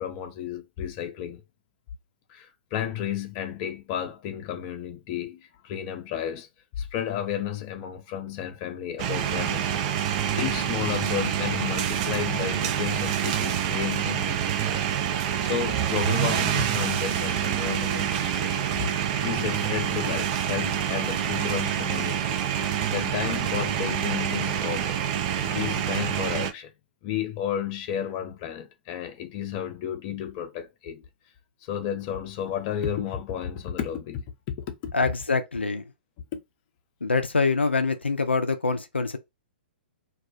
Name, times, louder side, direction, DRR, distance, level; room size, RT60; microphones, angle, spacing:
voice 1, 0.0-1.4 2.3-6.5 6.7-14.9 15.2-18.5 18.8-18.9 19.2-22.4 22.9-24.9 25.4-26.7 27.0-31.0 31.6-34.9, left 9 dB, 35° left, 0.6 m, -32 dB
sound 1, 9.0-26.5, right 9 dB, 35° right, 0.4 m, -27 dB
voice 2, 34.9-35.8 37.0-39.2, left 4 dB, 90° left, 0.4 m, -25 dB
2.3 x 2.1 x 2.6 m
figure-of-eight pair, 120°, 6 cm